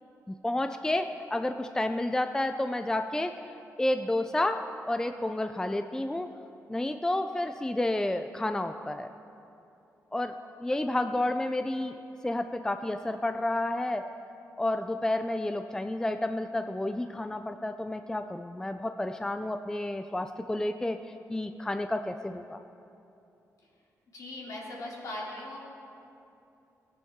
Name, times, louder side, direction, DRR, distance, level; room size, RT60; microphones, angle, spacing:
voice 1, 0.3-3.4 3.8-6.3 6.7-9.1 10.1-10.3 10.6-12.0 12.2-14.1 14.6-21.0 21.3-22.6, left 1 dB, 10° left, 8 dB, 0.4 m, -30 dB
voice 2, 24.1-25.6, left 1 dB, 65° left, -4 dB, 2.8 m, -39 dB
17.5 x 9.4 x 3.6 m, 2.7 s
cardioid pair, 85°, 6 cm